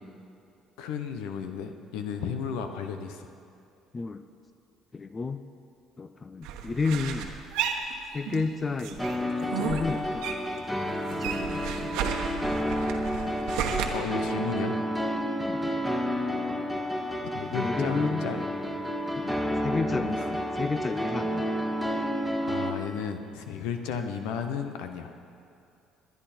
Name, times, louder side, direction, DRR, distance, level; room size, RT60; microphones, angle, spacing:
voice 1, 0.8-3.3 13.7-14.8 17.2-18.5 19.9-20.1 22.4-25.1, left 7 dB, 80° left, 6 dB, 1.0 m, -34 dB
voice 2, 4.9-5.4 6.0-7.3 8.1-10.5 11.1-12.0 15.4-15.8 17.4-18.3 19.2-19.3 19.6-21.5, left 4 dB, 30° left, 9 dB, 0.7 m, -32 dB
sound 1, 6.4-8.5 8.8-10.6 10.9-13.9, right 8 dB, 80° right, 1.2 m, -33 dB
sound 2, 9.0-22.7, equal, 10° left, 1.9 m, -30 dB
22.0 x 9.6 x 4.4 m, 2.6 s
supercardioid pair, 65°, 0 cm